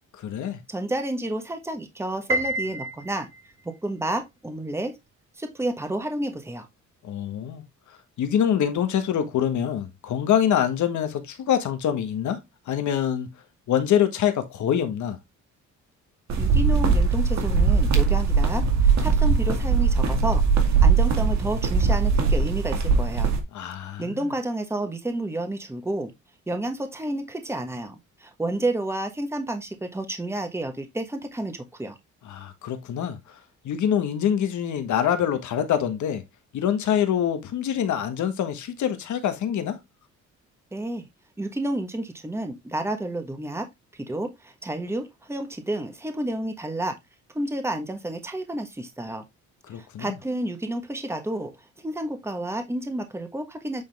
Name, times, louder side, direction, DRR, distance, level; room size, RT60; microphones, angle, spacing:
voice 1, 0.2-0.6 7.0-7.6 8.2-12.4 12.7-13.3 13.7-15.2 23.5-24.3 32.2-33.2 33.6-36.2 36.5-39.8 49.7-50.2, left 9 dB, 70° left, 1.5 m, -25 dB
voice 2, 0.7-3.3 3.6-5.0 5.4-6.7 16.4-23.3 24.0-26.1 26.5-32.0 40.7-41.0 41.4-43.7 43.9-46.9 47.3-49.2 49.7-53.8, right 1 dB, 10° right, 1.3 m, -30 dB
Piano, 2.3-3.6, right 1 dB, 45° right, 1.6 m, -29 dB
sound 1, 16.3-23.4, right 5 dB, 65° right, 2.0 m, -20 dB
8.6 x 3.6 x 3.5 m
cardioid pair, 90°, 30 cm